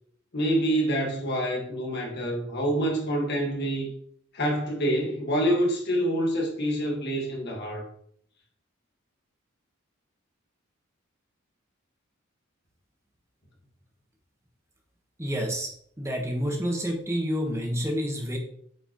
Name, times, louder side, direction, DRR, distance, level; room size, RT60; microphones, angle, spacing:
voice 1, 0.3-3.9 4.3-7.9, right 1 dB, 55° left, 1.9 m, -26 dB
voice 2, 15.2-15.7 16.0-18.4, equal, 15° right, 1.3 m, -28 dB
8.4 x 5.1 x 3.1 m
head